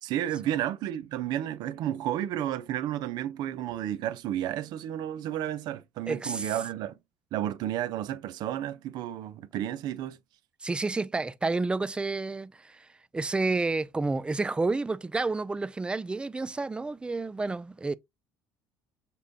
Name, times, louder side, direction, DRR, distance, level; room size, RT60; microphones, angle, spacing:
voice 1, 0.0-7.0 7.3-10.2, right 11 dB, 70° right, 0.5 m, -32 dB
voice 2, 6.1-6.5 10.6-12.9 13.1-17.9, right 3 dB, 15° right, 0.3 m, -30 dB
6.6 x 2.2 x 2.6 m
supercardioid pair, 95°, 8 cm